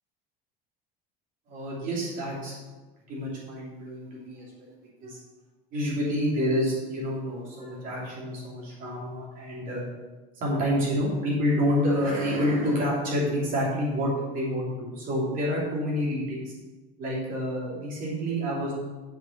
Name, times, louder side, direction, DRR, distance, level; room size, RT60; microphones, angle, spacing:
voice 1, 1.5-2.6 3.1-4.7 5.0-5.2 5.7-9.8 10.3-16.5 17.0-18.7, equal, 45° right, -5 dB, 3.0 m, -28 dB
7.4 x 5.7 x 6.7 m, 1.2 s
cardioid pair, 150°, 19 cm